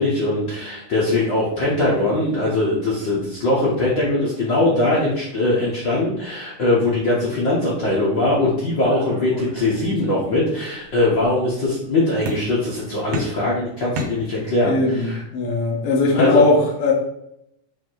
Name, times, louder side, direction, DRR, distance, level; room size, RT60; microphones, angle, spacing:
voice 1, 0.0-15.2 16.1-16.4, left 2 dB, 80° left, -6 dB, 1.0 m, -21 dB
sound 1, 8.9-10.2 10.6-11.3 12.3-12.8 13.1-14.7, equal, 70° right, 1.6 m, -33 dB
voice 2, 14.6-16.9, left 3 dB, 65° left, -2 dB, 1.5 m, -19 dB
7.2 x 3.0 x 4.6 m, 0.77 s
omnidirectional pair, 4.2 m